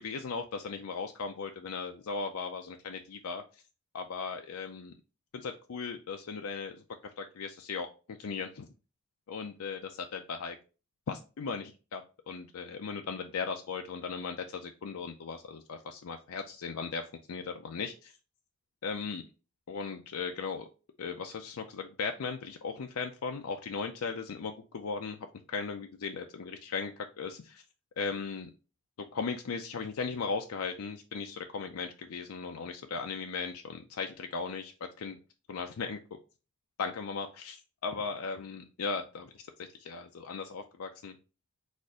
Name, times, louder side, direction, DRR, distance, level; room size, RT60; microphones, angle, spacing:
voice 1, 0.0-3.4 3.9-4.9 5.3-6.8 7.2-8.7 9.3-10.6 11.1-17.0 17.3-18.1 18.8-19.2 19.7-20.7 21.0-25.2 25.5-27.6 28.0-28.5 29.1-35.2 35.5-36.0 36.8-37.6 37.8-39.3 39.6-41.2, left 5 dB, 85° left, 5 dB, 0.5 m, -37 dB
4.2 x 2.5 x 4.8 m, 0.33 s
head